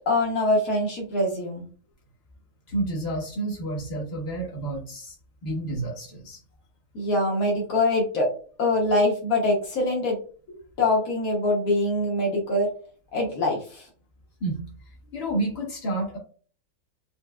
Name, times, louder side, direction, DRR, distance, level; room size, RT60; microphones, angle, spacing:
voice 1, 0.1-1.6 6.9-8.3 8.6-10.2 10.5-12.7 13.1-13.9, left 2 dB, 80° left, -2 dB, 1.3 m, -24 dB
voice 2, 2.7-5.1 5.4-6.4 14.4-14.6 15.1-16.2, right 2 dB, 45° left, -4 dB, 1.4 m, -30 dB
4.5 x 2.2 x 2.2 m, 0.42 s
omnidirectional pair, 1.5 m